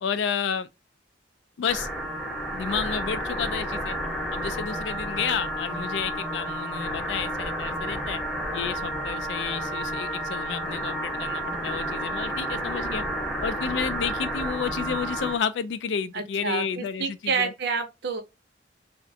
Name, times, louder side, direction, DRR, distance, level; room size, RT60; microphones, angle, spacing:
voice 1, 0.0-0.7 1.6-1.9 2.5-4.0 4.3-8.2 8.5-13.0 13.4-17.5, left 7 dB, 65° left, 0.3 m, -31 dB
sound 1, 1.7-15.4, right 1 dB, 5° left, 0.8 m, -31 dB
voice 2, 16.1-18.2, right 5 dB, 60° right, 0.6 m, -28 dB
2.4 x 2.1 x 2.6 m
head